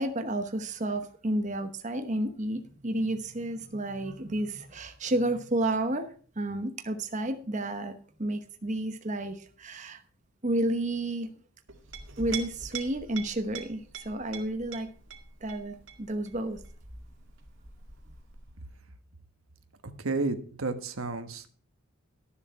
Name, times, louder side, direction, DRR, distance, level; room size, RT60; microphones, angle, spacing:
voice 1, 0.0-6.1 6.4-10.0 10.4-11.3 12.2-14.9 15.4-16.6, right 1 dB, 35° right, 7 dB, 1.0 m, -31 dB
Chink clink, 11.7-18.8, right 6 dB, 65° right, 2.0 m, -44 dB
voice 2, 20.0-21.5, right 3 dB, 85° right, 8 dB, 1.4 m, -31 dB
12.5 x 7.3 x 5.7 m, 0.43 s
head